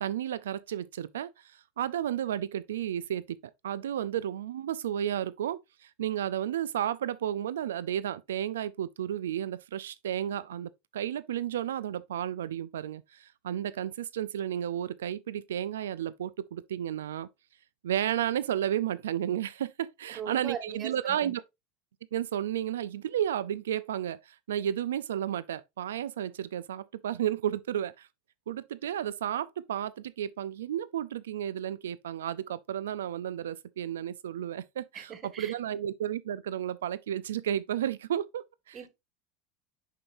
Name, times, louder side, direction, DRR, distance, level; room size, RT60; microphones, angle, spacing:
voice 1, 0.0-3.4 3.6-17.3 17.8-21.4 22.1-28.1 28.5-38.8, right 10 dB, 85° right, 0.4 m, -32 dB
voice 2, 20.1-21.3 34.9-35.5 38.7-38.9, right 7 dB, 35° right, 1.5 m, -40 dB
7.3 x 5.2 x 2.5 m
hypercardioid pair, 95°, 0 cm